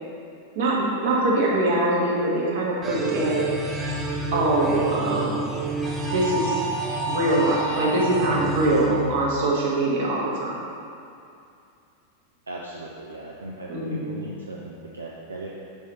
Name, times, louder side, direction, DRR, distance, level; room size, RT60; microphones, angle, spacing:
voice 1, 0.5-3.4 4.3-5.4 6.1-6.6 7.1-10.5 13.7-14.1, right 2 dB, 50° right, -5 dB, 1.4 m, -23 dB
sound 1, 2.8-9.8, right 2 dB, 20° right, 0.7 m, -28 dB
voice 2, 12.5-15.5, right 2 dB, 75° right, -3 dB, 0.5 m, -38 dB
5.3 x 4.9 x 4.1 m, 2.5 s
figure-of-eight pair, 90°, 0 cm